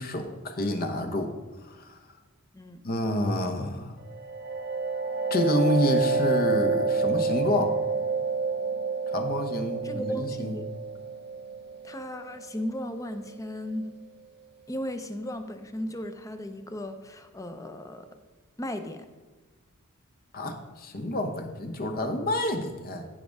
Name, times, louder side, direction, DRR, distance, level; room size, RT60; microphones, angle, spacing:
voice 1, 0.0-1.3 1.7-2.0 2.8-4.0 5.3-7.8 9.1-10.6 20.3-23.1, left 1 dB, 45° left, 6 dB, 1.0 m, -28 dB
sound 1, 4.1-13.5, right 4 dB, 50° right, 0.7 m, -29 dB
voice 2, 9.8-10.7 11.8-13.9 14.7-18.1 18.6-19.1, left 1 dB, 15° left, 8 dB, 0.6 m, -36 dB
15.0 x 5.3 x 3.6 m, 1.3 s
head